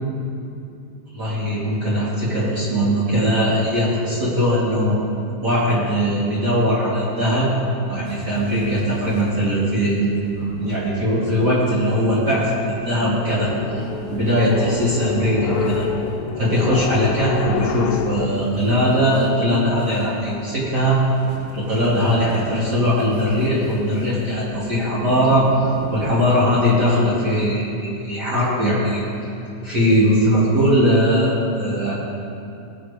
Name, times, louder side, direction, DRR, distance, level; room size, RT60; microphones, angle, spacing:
voice 1, 1.1-4.9 5.4-7.5 7.9-10.1 10.4-13.5 14.1-15.8 16.4-21.0 21.5-29.0 29.6-31.9, equal, 40° right, -8 dB, 1.5 m, -20 dB
sound 1, 8.0-26.4, right 3 dB, 75° right, 3.6 m, -39 dB
sound 2, 12.8-18.3, left 7 dB, 85° left, 3.2 m, -28 dB
18.5 x 6.4 x 5.1 m, 2.7 s
omnidirectional pair, 5.7 m